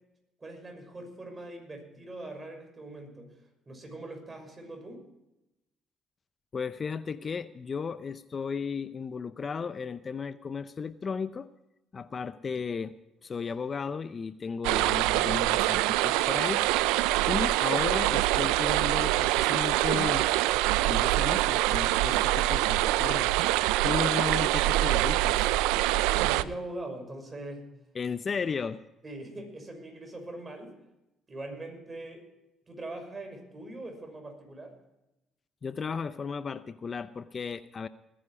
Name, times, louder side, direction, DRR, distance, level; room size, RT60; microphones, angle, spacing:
voice 1, 0.4-3.4 3.7-5.0 12.5-12.6 26.1-27.6 29.0-30.8 31.3-32.3 32.7-34.8, right 2 dB, 30° right, 4 dB, 6.1 m, -42 dB
voice 2, 6.5-11.5 11.9-12.9 13.2-16.6 17.3-20.3 20.9-23.3 23.8-25.5 27.9-28.8 35.6-37.9, left 5 dB, 40° left, 14 dB, 0.6 m, -34 dB
sound 1, 14.6-26.4, right 17 dB, 85° right, 0.4 m, -25 dB
20.5 x 10.0 x 4.9 m, 0.94 s
supercardioid pair, 65°, 0 cm